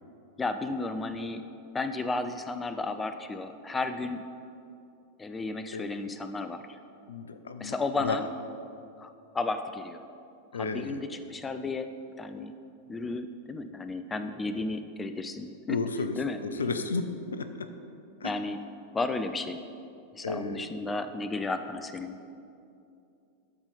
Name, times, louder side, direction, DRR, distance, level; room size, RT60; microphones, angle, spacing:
voice 1, 0.4-1.4 1.7-4.2 5.2-6.8 7.6-8.3 9.0-10.0 10.5-11.9 12.2-12.6 12.9-15.8 16.2-16.4 18.2-18.6 18.9-19.6 20.1-22.4, left 3 dB, 15° left, 9 dB, 0.4 m, -33 dB
voice 2, 7.1-7.7 8.0-8.2 10.5-11.0 15.7-16.1 16.4-17.1 17.3-17.7 18.2-18.3 20.2-20.7, left 4 dB, 70° left, 10 dB, 0.5 m, -32 dB
13.0 x 4.5 x 5.1 m, 2.6 s
figure-of-eight pair, 90°, 0 cm